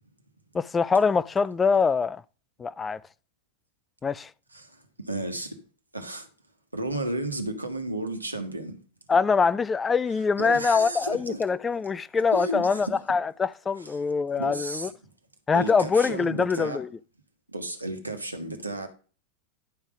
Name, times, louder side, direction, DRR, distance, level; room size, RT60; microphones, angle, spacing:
voice 1, 0.5-2.2 2.6-3.0 4.0-4.3 9.1-14.9 15.5-16.9, left 5 dB, 15° left, 0.3 m, -24 dB
voice 2, 4.5-5.6 5.9-6.3 6.7-8.8 10.4-11.4 12.3-12.9 14.3-14.9 15.5-16.8 17.5-18.9, right 1 dB, 85° right, 1.3 m, -33 dB
10.5 x 3.6 x 5.9 m
figure-of-eight pair, 90°, 0 cm